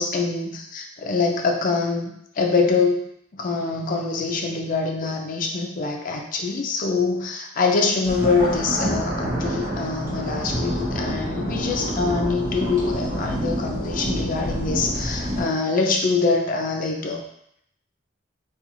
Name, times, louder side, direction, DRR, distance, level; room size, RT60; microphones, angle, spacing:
voice 1, 0.0-3.1 3.4-17.2, left 4 dB, 45° left, 2 dB, 0.4 m, -24 dB
sound 1, 8.0-15.5, equal, 50° right, 0.9 m, -27 dB
2.4 x 2.4 x 3.0 m, 0.74 s
head